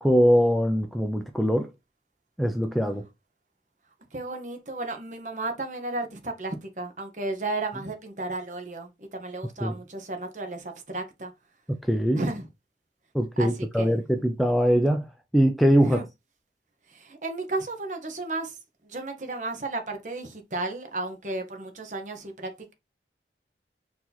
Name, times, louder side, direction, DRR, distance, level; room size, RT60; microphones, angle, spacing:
voice 1, 0.0-1.7 2.4-3.1 9.6-9.7 11.7-12.2 13.1-15.1 15.3-16.0, equal, ahead, 0.3 m, -22 dB
voice 2, 4.1-11.3 12.1-12.5 13.4-13.5 13.8-14.2 15.8-16.0 16.9-18.6 18.8-22.7, right 2 dB, 45° right, 0.9 m, -33 dB
4.6 x 2.8 x 3.9 m
head